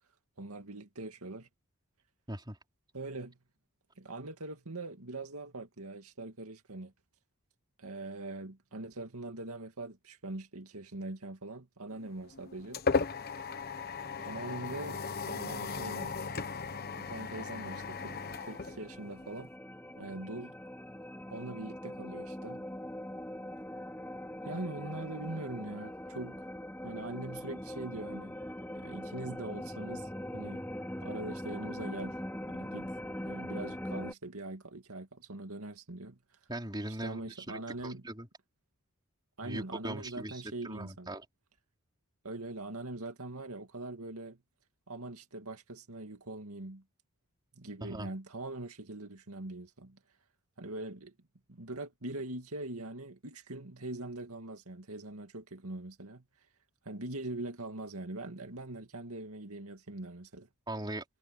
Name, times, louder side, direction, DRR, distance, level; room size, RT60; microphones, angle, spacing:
voice 1, 0.4-1.5 2.9-3.4 4.0-6.9 7.8-12.8 14.2-16.1 17.0-19.5 20.0-20.5 21.3-22.6 24.4-26.5 26.8-28.4 28.7-30.6 31.0-32.2 32.5-32.9 33.2-36.2 37.0-38.0 39.4-41.1 42.2-44.4 44.9-46.8 47.6-50.0 50.6-51.1 51.5-56.2 56.8-60.5, right 2 dB, 80° right, 2.3 m, -42 dB
sound 1, 12.0-19.4, left 4 dB, 45° left, 1.2 m, -36 dB
sound 2, 16.4-34.1, left 1 dB, 10° left, 2.6 m, -42 dB
voice 2, 36.5-38.3 39.4-41.3 47.8-48.1 60.7-61.0, right 1 dB, 20° right, 3.7 m, -40 dB
head